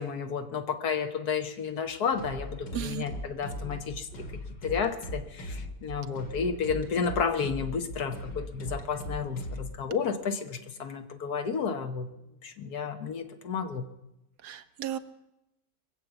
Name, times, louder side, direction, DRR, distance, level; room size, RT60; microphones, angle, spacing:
voice 1, 0.0-4.1 4.6-12.1 12.4-13.9, left 6 dB, 65° left, 8 dB, 1.5 m, -31 dB
sound 1, 2.1-9.8, equal, 80° left, 2.6 m, -39 dB
voice 2, 2.7-3.1 14.4-15.0, right 11 dB, 70° right, 11 dB, 1.2 m, -34 dB
22.5 x 7.5 x 8.1 m, 0.91 s
omnidirectional pair, 1.9 m